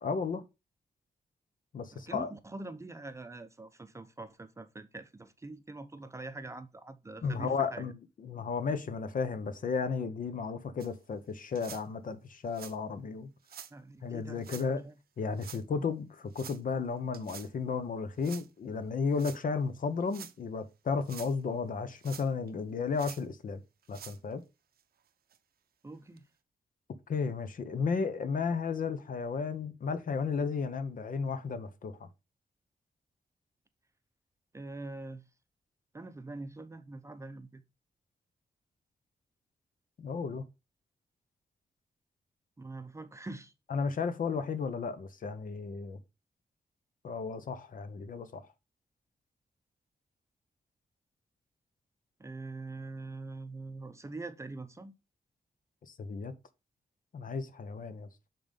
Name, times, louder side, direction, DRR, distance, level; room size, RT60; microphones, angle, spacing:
voice 1, 0.0-0.4 1.7-2.3 7.2-7.9 8.2-13.3 14.0-14.8 15.2-23.6 23.9-24.4 27.1-32.1 40.0-40.5 43.7-46.0 47.0-48.4 55.9-56.3 57.1-58.1, left 5 dB, 60° left, 0.9 m, -33 dB
voice 2, 1.9-7.9 13.7-14.9 25.8-26.3 34.5-35.3 35.9-37.6 42.6-43.5 52.2-54.9, right 2 dB, 20° right, 0.6 m, -44 dB
sound 1, 10.8-10.9 11.5-11.8 12.5-12.8 13.4-13.7 14.4-14.7 15.4-15.6 16.3-16.6 17.1-17.5 18.2-18.5 19.1-19.4 20.0-20.3 20.9-21.3 22.0-22.5 22.9-23.2 23.8-24.2 24.8-24.9 25.3-25.4 26.2-26.3, right 8 dB, 75° right, 0.7 m, -47 dB
7.1 x 3.8 x 5.2 m
wide cardioid pair, 135°, 16 cm